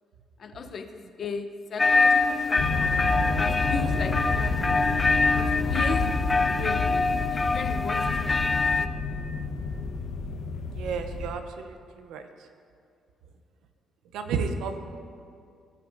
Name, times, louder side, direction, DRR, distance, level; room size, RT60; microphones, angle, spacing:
voice 1, 0.4-2.6 3.4-4.6 5.4-6.8 7.2-8.3, left 5 dB, 55° left, 7 dB, 0.7 m, -35 dB
sound 1, 1.8-8.9, left 3 dB, 25° left, 0.3 m, -24 dB
sound 2, 2.6-11.3, left 3 dB, 80° left, 0.9 m, -30 dB
voice 2, 10.7-12.2 14.1-14.8, right 5 dB, 85° right, 7 dB, 0.6 m, -32 dB
17.0 x 5.8 x 2.6 m, 2.4 s
cardioid pair, 90°, 0 cm